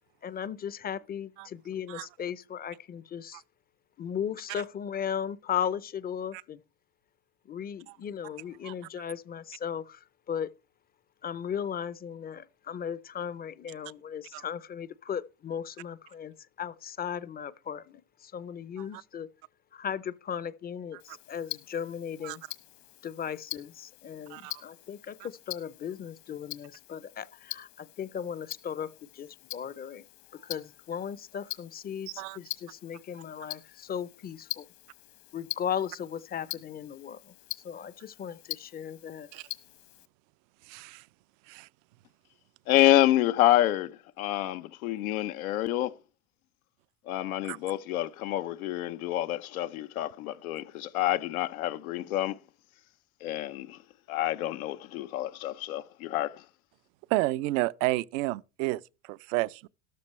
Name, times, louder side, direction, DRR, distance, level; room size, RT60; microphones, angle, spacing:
voice 1, 0.2-3.4 4.0-6.6 7.5-10.5 11.2-19.3 19.7-22.4 23.0-30.0 30.3-34.7 35.3-37.3 37.6-39.3, left 8 dB, 20° left, 0.6 m, -37 dB
Tick-tock, 21.0-40.1, left 20 dB, 60° left, 1.3 m, -44 dB
voice 2, 24.3-24.6 25.2-25.3 32.1-32.4 39.3-39.5 40.6-41.1 41.5-41.7 47.5-47.6 57.1-59.7, right 20 dB, 65° right, 0.6 m, -31 dB
voice 3, 42.7-45.9 47.1-52.4 53.2-53.8 54.1-56.4, left 14 dB, 80° left, 0.7 m, -27 dB
13.0 x 12.5 x 3.2 m
supercardioid pair, 105°, 42 cm